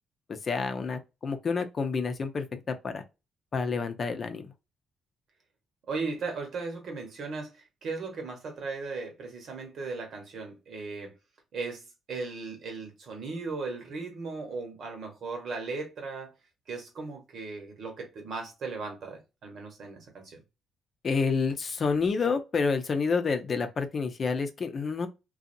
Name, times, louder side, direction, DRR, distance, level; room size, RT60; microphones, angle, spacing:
voice 1, 0.3-3.0 3.5-4.5 21.0-25.1, left 5 dB, 45° left, 0.6 m, -29 dB
voice 2, 5.9-11.1 11.5-16.3 16.7-20.4, right 4 dB, 65° right, 1.2 m, -37 dB
2.6 x 2.3 x 2.6 m
cardioid pair, 90°, 0 cm